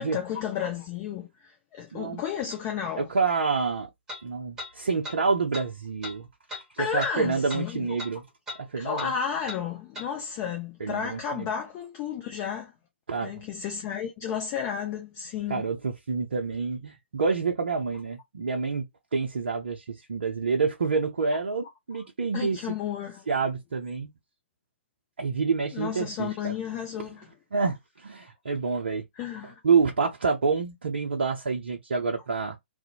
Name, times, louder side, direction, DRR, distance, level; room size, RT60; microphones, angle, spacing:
voice 1, 0.0-3.1 6.5-7.9 8.7-12.7 13.2-15.6 22.3-23.3 25.7-27.3 29.2-29.6, left 8 dB, 25° left, 0.5 m, -32 dB
voice 2, 1.9-2.2 3.0-3.9 4.2-6.3 6.7-8.2 8.6-9.1 10.8-11.5 13.1-13.3 15.5-18.9 19.1-22.6 23.3-24.1 25.2-26.5 27.5-29.0 29.6-32.6, right 4 dB, 60° right, 0.5 m, -28 dB
sound 1, 2.5-2.6 4.1-4.2 4.6-4.7 5.0-5.2 5.5-5.7 6.0-6.2 6.5-6.6 7.0-7.1 7.5-7.6 8.0-8.1 8.5-8.6 9.0-9.1 9.5-9.6 9.9-10.1, left 2 dB, 10° right, 1.1 m, -38 dB
2.5 x 2.1 x 2.7 m
figure-of-eight pair, 125°, 6 cm